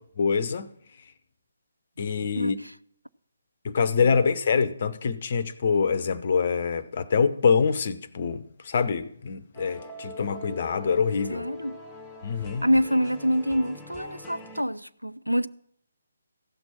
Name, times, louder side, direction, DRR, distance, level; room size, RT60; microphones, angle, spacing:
voice 1, 0.2-0.7 2.0-2.6 3.6-11.5 12.2-12.7, left 5 dB, 40° left, 0.6 m, -25 dB
sound 1, 9.5-14.6, left 3 dB, 5° left, 1.0 m, -43 dB
voice 2, 11.3-11.8 12.6-15.5, equal, 90° right, 0.4 m, -26 dB
15.5 x 6.1 x 5.6 m
figure-of-eight pair, 145°, 0 cm